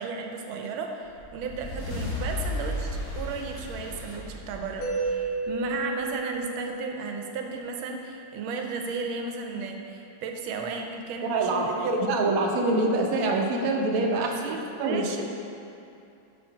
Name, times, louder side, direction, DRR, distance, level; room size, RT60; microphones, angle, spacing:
voice 1, 0.0-12.3 14.1-15.2, right 4 dB, 85° right, 3 dB, 1.4 m, -34 dB
sound 1, 1.1-5.7, left 1 dB, 80° left, 2.2 m, -34 dB
Mallet percussion, 4.8-8.6, right 3 dB, 60° left, 1.1 m, -34 dB
voice 2, 11.2-14.3 14.8-15.2, right 2 dB, 60° right, 0 dB, 0.9 m, -25 dB
5.8 x 4.3 x 5.6 m, 2.7 s
omnidirectional pair, 2.2 m